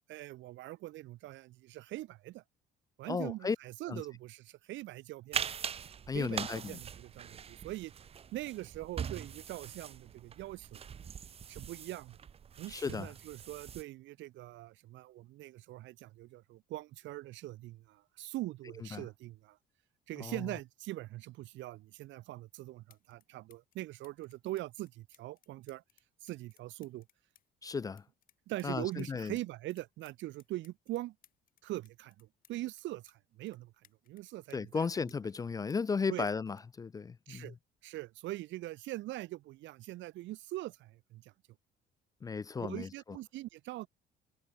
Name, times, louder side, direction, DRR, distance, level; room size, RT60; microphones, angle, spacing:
voice 1, 0.1-2.4 3.0-5.4 6.1-7.9 8.3-10.8 11.5-12.2 12.6-19.6 20.1-25.8 26.2-27.0 28.5-31.1 31.6-33.7 34.1-34.9 36.1-36.2 37.3-37.5 37.8-41.3 42.6-43.9, right 16 dB, 70° right, 1.5 m, -42 dB
voice 2, 3.1-3.6 3.9-4.0 6.1-6.8 12.7-13.1 18.9-19.1 20.2-20.4 27.6-28.0 28.6-29.4 34.5-37.5 42.2-42.9, left 5 dB, 20° left, 0.5 m, -35 dB
sound 1, 5.3-13.8, right 7 dB, 30° right, 1.8 m, -42 dB
sound 2, 22.4-22.5 22.9-23.2 23.5-29.1 29.4-33.2 33.5-35.4 35.7-37.5 38.5-38.7, left 11 dB, 45° left, 5.4 m, -67 dB
cardioid pair, 175°, 20 cm